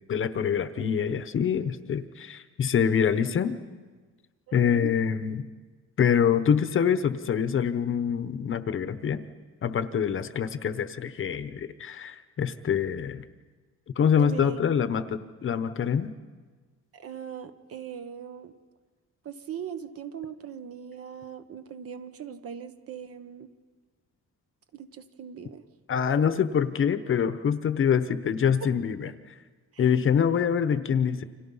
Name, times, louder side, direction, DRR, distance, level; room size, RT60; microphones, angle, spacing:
voice 1, 0.1-3.6 4.5-5.5 6.0-9.2 9.6-13.2 14.0-16.1 25.9-29.1 29.8-31.2, left 7 dB, 45° left, 12 dB, 1.0 m, -25 dB
voice 2, 4.5-4.9 14.1-14.6 16.9-18.5 19.2-23.5 24.7-25.6 28.6-28.7 29.7-29.9, right 8 dB, 50° right, 9 dB, 1.3 m, -40 dB
30.0 x 26.0 x 5.6 m, 1.4 s
cardioid pair, 180°, 30 cm